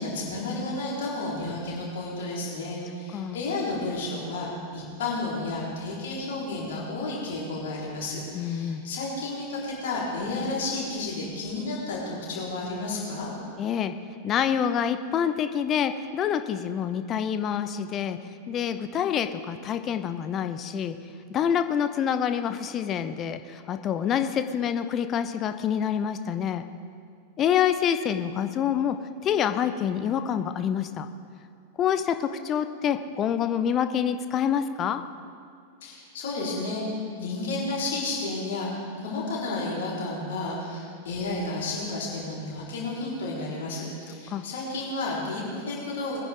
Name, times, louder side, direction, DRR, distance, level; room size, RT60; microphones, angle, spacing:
voice 1, 0.0-13.3 35.8-36.9 37.2-46.2, left 2 dB, 60° left, -6 dB, 4.2 m, -32 dB
voice 2, 8.3-8.8 13.6-13.9 14.2-18.2 18.5-21.0 21.3-26.6 27.4-29.0 29.2-31.1 31.8-35.0 44.3-44.4, left 8 dB, 30° left, 10 dB, 0.6 m, -27 dB
21.5 x 10.0 x 3.7 m, 2.2 s
figure-of-eight pair, 90°, 0 cm